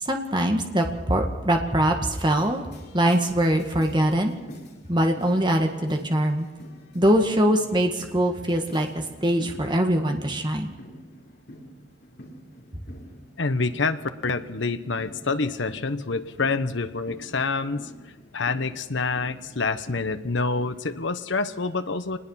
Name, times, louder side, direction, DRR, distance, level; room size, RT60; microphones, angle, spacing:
voice 1, 0.0-4.3 4.9-6.5 6.9-10.7, right 1 dB, 25° right, 4 dB, 1.9 m, -23 dB
sound 1, 2.3-21.2, equal, 55° left, 3.3 m, -47 dB
voice 2, 13.4-17.9 18.3-22.2, left 3 dB, 70° left, 11 dB, 1.0 m, -27 dB
24.5 x 20.0 x 5.7 m, 1.3 s
head